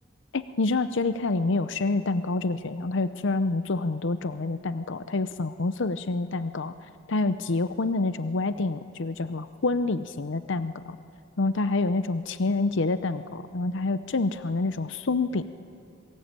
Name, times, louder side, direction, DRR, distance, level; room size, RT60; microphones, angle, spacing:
voice 1, 0.3-6.7 7.1-11.0 11.4-15.7, left 3 dB, 65° left, 12 dB, 0.7 m, -27 dB
26.0 x 23.0 x 8.9 m, 2.6 s
head